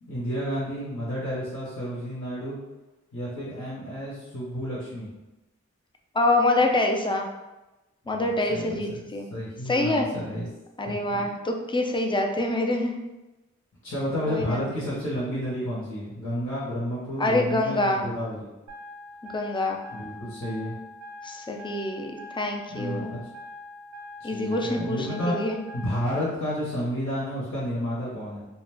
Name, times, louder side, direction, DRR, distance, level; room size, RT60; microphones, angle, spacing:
voice 1, 0.0-2.6 3.1-5.1 8.1-8.2 8.5-8.8 9.3-10.5 10.8-11.3 13.8-18.5 19.9-20.7 22.7-23.2 24.2-25.3 25.7-28.5, equal, 60° left, -8 dB, 0.9 m, -31 dB
voice 2, 6.1-7.3 8.1-9.3 9.7-10.1 10.8-13.0 14.3-14.6 17.2-18.0 19.3-19.8 21.2-23.1 24.2-25.6, left 2 dB, 15° left, 2 dB, 0.4 m, -26 dB
sound 1, 18.7-26.3, left 2 dB, 65° right, 0.4 m, -43 dB
2.4 x 2.2 x 3.3 m, 1.0 s
wide cardioid pair, 60°, 31 cm